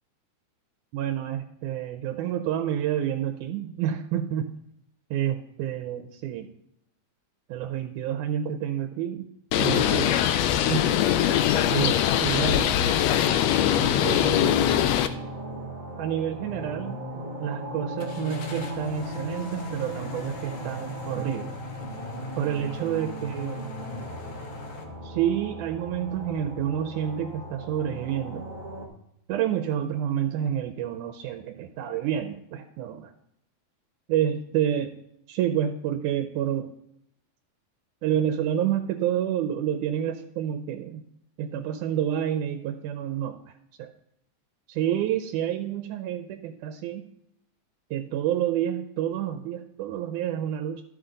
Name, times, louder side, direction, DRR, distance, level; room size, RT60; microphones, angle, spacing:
voice 1, 0.9-4.5 5.1-6.5 7.5-9.3 9.6-10.2 10.7-10.9 11.7-12.7 14.0-14.9 16.0-17.0 17.4-21.6 22.4-23.6 25.0-28.4 29.3-33.1 34.1-34.9 35.3-36.7 38.0-41.0 41.4-43.4 43.8-43.9 44.7-47.1 47.9-50.8, right 10 dB, 85° right, 6 dB, 2.1 m, -29 dB
Bird, 9.5-15.1, left 10 dB, 85° left, 1.5 m, -22 dB
sound 1, 13.2-28.9, equal, 70° right, 0.4 m, -37 dB
sound 2, 15.4-15.5 18.0-24.8, left 5 dB, 65° left, 1.5 m, -42 dB
12.5 x 6.2 x 3.8 m, 0.77 s
omnidirectional pair, 3.5 m